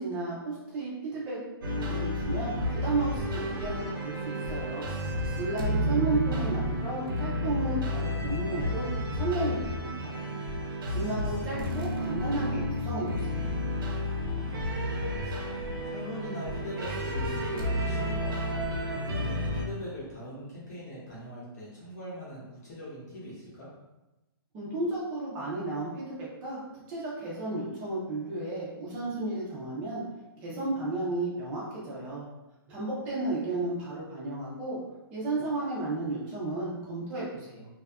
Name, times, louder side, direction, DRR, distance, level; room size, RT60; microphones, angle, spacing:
voice 1, 0.0-1.4 1.8-4.9 5.4-10.3 10.7-13.5 24.5-26.6 26.9-30.0 30.4-32.2 32.7-34.8 35.1-37.7, right 2 dB, 10° right, -6 dB, 0.3 m, -33 dB
sound 1, 1.6-19.6, left 1 dB, 60° right, 0.5 m, -31 dB
voice 2, 10.9-11.4 14.3-15.5 15.8-18.6 19.2-23.7, left 1 dB, 40° left, -8 dB, 0.7 m, -42 dB
2.6 x 2.2 x 2.3 m, 1.0 s
hypercardioid pair, 170°, 13 cm